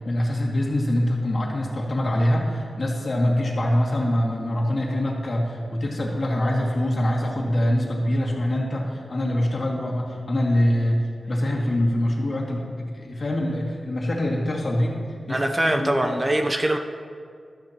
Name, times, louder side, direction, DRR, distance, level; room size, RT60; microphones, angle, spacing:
voice 1, 0.0-15.0 15.3-16.2, left 1 dB, 55° left, -3 dB, 2.3 m, -24 dB
voice 2, 15.3-16.8, right 1 dB, 25° right, 4 dB, 0.7 m, -22 dB
14.0 x 13.0 x 3.0 m, 2.2 s
wide cardioid pair, 80°, 0 cm